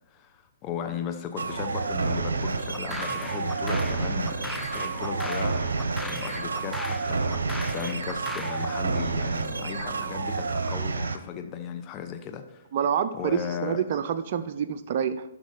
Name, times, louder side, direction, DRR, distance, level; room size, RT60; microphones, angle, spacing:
voice 1, 0.1-12.6 13.2-13.8, left 8 dB, 25° left, 6 dB, 0.8 m, -36 dB
sound 1, 1.4-11.2, right 4 dB, 80° right, 0.9 m, -29 dB
sound 2, 2.7-8.6, left 3 dB, 5° left, 0.4 m, -39 dB
voice 2, 12.7-15.2, right 8 dB, 45° right, 9 dB, 0.5 m, -27 dB
10.5 x 6.0 x 4.0 m, 0.90 s
hypercardioid pair, 140°, 0 cm